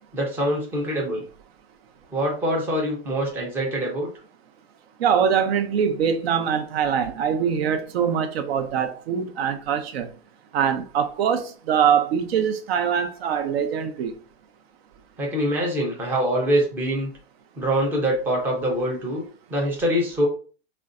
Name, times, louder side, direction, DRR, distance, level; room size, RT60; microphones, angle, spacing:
voice 1, 0.1-1.2 2.1-4.1 15.2-17.1 17.6-19.2 19.5-20.3, equal, 5° right, 0.4 m, -24 dB
voice 2, 5.0-10.1 10.5-14.1, right 7 dB, 70° right, 0.7 m, -23 dB
3.7 x 2.2 x 2.4 m
supercardioid pair, 165°, 32 cm